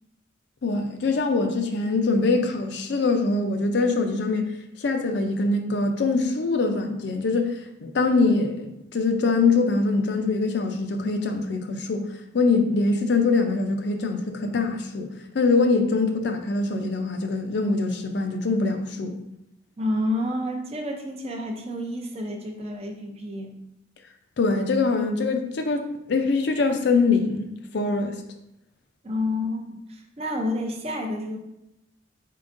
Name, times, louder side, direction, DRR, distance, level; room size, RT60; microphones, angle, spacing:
voice 1, 0.6-12.1 12.3-15.1 15.3-19.2 24.4-28.2, left 3 dB, 60° left, 0.4 m, -23 dB
voice 2, 19.8-23.6 29.0-31.4, left 1 dB, 30° right, 0.5 m, -29 dB
4.4 x 3.7 x 2.5 m
head